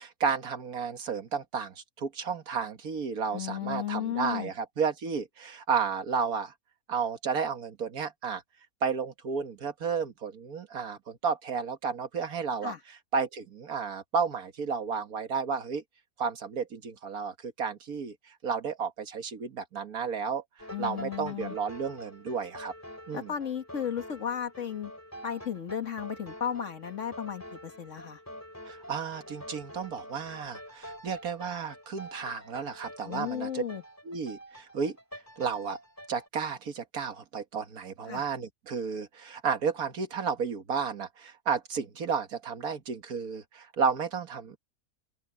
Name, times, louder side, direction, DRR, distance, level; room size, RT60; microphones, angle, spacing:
voice 1, 0.0-6.5 6.9-8.4 8.8-15.8 16.2-18.2 18.4-20.4 20.8-22.7 23.1-23.3 28.7-33.6 34.1-35.0 35.4-35.8 36.1-44.6, right 6 dB, 70° right, 1.9 m, -32 dB
voice 2, 3.3-4.5 12.6-12.8 20.7-21.6 23.1-24.9 25.2-28.2 33.0-33.8 38.1-38.2, left 9 dB, 55° left, 1.8 m, -34 dB
sound 1, 20.6-36.3, equal, 10° left, 3.7 m, -46 dB
open air
omnidirectional pair, 1.6 m